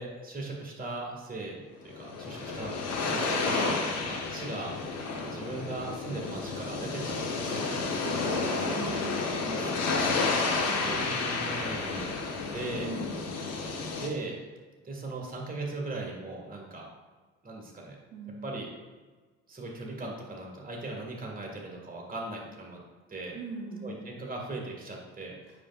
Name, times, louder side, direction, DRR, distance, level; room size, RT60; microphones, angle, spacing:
voice 1, 0.0-3.6 4.0-4.8 5.2-7.9 9.4-9.7 10.3-12.1 12.5-12.9 13.9-14.4 14.8-16.9 17.4-18.0 18.4-18.7 19.5-22.8 23.1-23.4 23.8-25.3, right 2 dB, 25° right, -1 dB, 1.9 m, -39 dB
sound 1, 1.8-14.1, left 4 dB, 50° left, 1.3 m, -31 dB
voice 2, 8.0-11.0 12.8-13.1 18.1-18.4 23.3-23.9, right 3 dB, 70° right, -2 dB, 1.0 m, -41 dB
8.6 x 5.2 x 2.4 m, 1.3 s
figure-of-eight pair, 50°, 33 cm